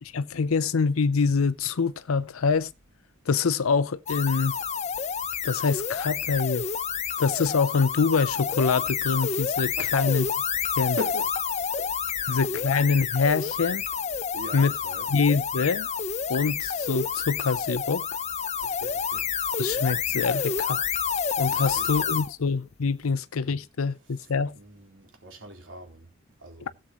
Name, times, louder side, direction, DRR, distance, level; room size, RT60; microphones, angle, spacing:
voice 1, 0.0-2.7 3.3-4.5 5.4-6.7 7.2-10.2 10.8-11.0 12.3-13.8 14.5-14.7 15.1-15.9 16.3-18.0 19.6-20.9 21.4-24.6, left 4 dB, 80° left, 0.6 m, -25 dB
sound 1, 4.1-22.3, left 7 dB, 35° left, 0.7 m, -29 dB
voice 2, 9.8-10.4 10.9-11.3 11.8-12.7 14.3-15.1 18.6-19.3 21.5-22.2 24.0-26.1 26.4-26.7, equal, 60° right, 3.9 m, -41 dB
17.0 x 7.6 x 3.0 m
head